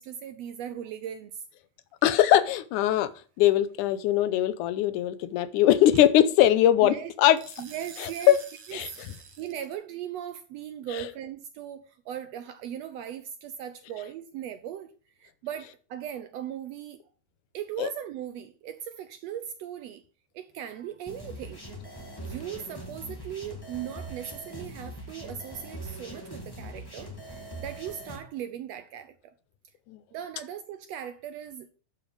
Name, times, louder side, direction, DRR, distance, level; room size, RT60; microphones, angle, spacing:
voice 1, 0.0-1.4 6.8-7.1 7.6-8.4 8.7-8.8 9.4-14.9 15.2-17.0 17.5-20.0 20.3-21.6 22.2-29.2 30.1-31.7, right 10 dB, 75° right, 1.5 m, -38 dB
voice 2, 2.0-3.1 3.4-7.4 8.0-8.4 8.7-8.9 10.9-11.1 17.8-17.9 29.9-30.0, left 12 dB, 90° left, 2.2 m, -21 dB
sound 1, 2.0-2.4 5.9-6.0 7.3-9.7, right 6 dB, 60° right, 2.5 m, -48 dB
sound 2, 21.1-28.2, right 1 dB, 10° left, 1.1 m, -41 dB
12.0 x 5.0 x 5.1 m
omnidirectional pair, 3.5 m